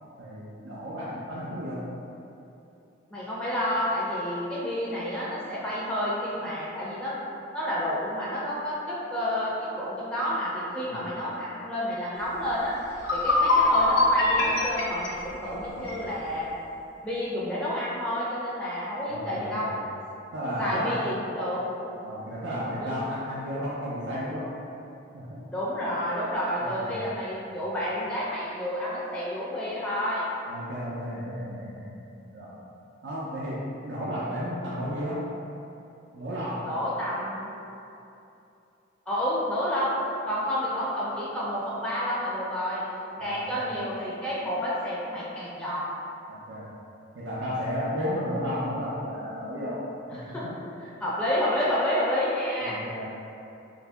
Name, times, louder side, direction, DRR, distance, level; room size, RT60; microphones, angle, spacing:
voice 1, 0.2-1.9 10.9-11.1 15.4-16.0 19.1-19.7 20.3-21.0 22.0-24.5 25.1-25.5 26.6-27.1 30.5-32.5 33.0-35.2 36.1-36.7 43.2-43.7 46.3-46.7 47.1-49.8 50.1-50.5 52.6-53.0, equal, 70° right, -8 dB, 0.4 m, -33 dB
voice 2, 3.1-7.2 7.5-12.8 13.1-16.5 17.0-19.7 20.6-21.6 22.8-22.9 25.5-30.3 36.6-37.5 39.1-42.8 43.2-45.9 50.1-50.4 51.0-52.8, equal, 5° left, -8 dB, 0.4 m, -30 dB
sound 1, 12.5-12.6 12.9-16.0, left 2 dB, 90° left, 0.7 m, -23 dB
2.8 x 2.6 x 3.4 m, 2.8 s
head